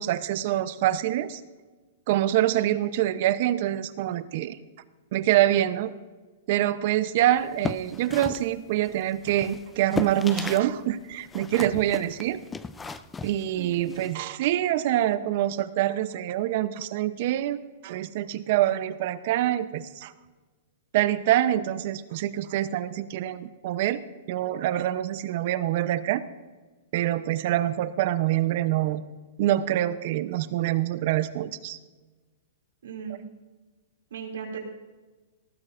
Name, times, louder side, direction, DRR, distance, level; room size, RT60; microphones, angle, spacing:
voice 1, 0.0-1.4 2.1-4.6 5.1-5.9 6.5-12.4 12.8-17.6 17.8-20.1 20.9-24.0 24.3-26.2 26.9-29.0 29.4-31.8, right 13 dB, 50° right, 13 dB, 0.8 m, -25 dB
sound 1, 7.4-10.7 11.0-14.1, left 4 dB, 10° left, 0.4 m, -36 dB
voice 2, 13.6-13.9 32.8-33.2 34.1-34.6, right 7 dB, 80° right, 0 dB, 2.7 m, -37 dB
19.0 x 14.0 x 2.6 m, 1.3 s
hypercardioid pair, 150°, 0 cm